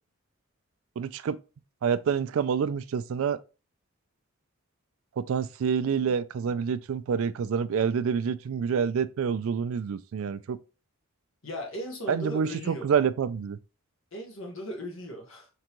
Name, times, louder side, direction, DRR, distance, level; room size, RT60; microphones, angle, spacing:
voice 1, 1.0-1.4 1.8-3.4 5.2-10.6 12.1-13.6, right 6 dB, 70° right, 0.3 m, -27 dB
voice 2, 11.4-12.9 14.1-15.5, equal, 65° left, 1.3 m, -37 dB
4.4 x 3.8 x 3.0 m
head